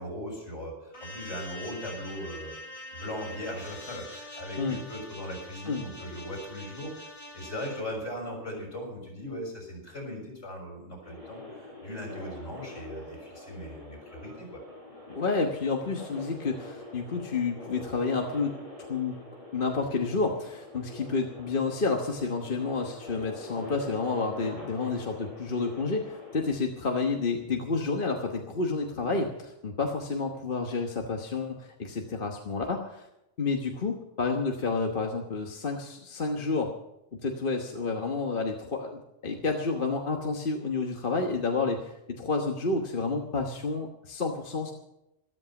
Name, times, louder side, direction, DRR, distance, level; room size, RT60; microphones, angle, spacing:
voice 1, 0.0-2.6 2.9-14.6, equal, 60° left, 0 dB, 6.8 m, -39 dB
sound 1, 0.9-7.8, left 1 dB, 75° left, 4.2 m, -44 dB
sound 2, 11.0-26.4, left 2 dB, 25° right, 6.5 m, -44 dB
voice 2, 15.1-18.6 18.9-19.2 19.5-33.1 33.4-36.7 37.2-44.7, left 4 dB, 40° left, 2 dB, 1.4 m, -30 dB
13.5 x 13.5 x 5.9 m, 0.86 s
omnidirectional pair, 1.4 m